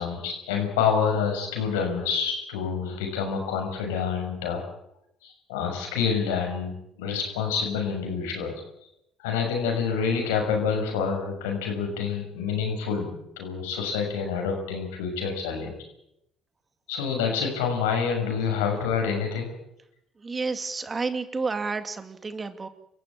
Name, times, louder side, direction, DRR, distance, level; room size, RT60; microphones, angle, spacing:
voice 1, 0.0-4.6 5.2-8.5 9.2-15.7 16.9-19.5, left 6 dB, 85° left, 3 dB, 6.5 m, -27 dB
voice 2, 20.2-22.7, right 4 dB, 30° right, 9 dB, 2.5 m, -30 dB
27.0 x 15.0 x 8.8 m, 0.81 s
hypercardioid pair, 60°, 0 cm